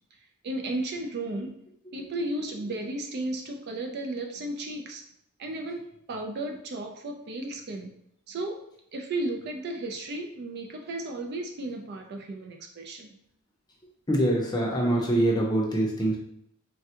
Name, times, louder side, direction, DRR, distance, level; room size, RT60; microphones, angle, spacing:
voice 1, 0.4-1.5 1.9-5.0 5.4-7.9 8.3-8.6 8.9-13.1, right 2 dB, 50° right, 3 dB, 0.4 m, -34 dB
voice 2, 14.1-16.2, right 1 dB, 20° left, -2 dB, 0.6 m, -24 dB
3.4 x 2.2 x 2.8 m, 0.74 s
head